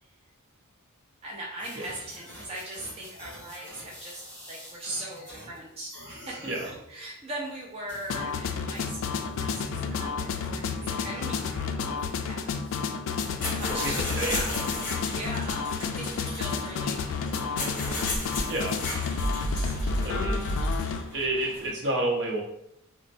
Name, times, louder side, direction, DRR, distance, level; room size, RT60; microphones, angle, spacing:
voice 1, 1.2-4.2 4.5-12.8 13.6-17.6 18.5-19.0 19.5-19.9, right 1 dB, 30° right, -3 dB, 0.4 m, -40 dB
sound 1, 1.6-5.6 5.9-6.8 7.9-8.3 8.7-11.7, equal, 10° left, 1.4 m, -45 dB
sound 2, 8.1-21.0, left 4 dB, 60° left, 0.3 m, -30 dB
sound 3, 13.1-21.7, left 2 dB, 40° left, 0.8 m, -35 dB
voice 2, 13.7-14.6 18.5-18.8 20.0-20.6 21.1-22.4, right 2 dB, 55° right, -1 dB, 0.8 m, -30 dB
4.1 x 2.1 x 2.5 m, 0.77 s
head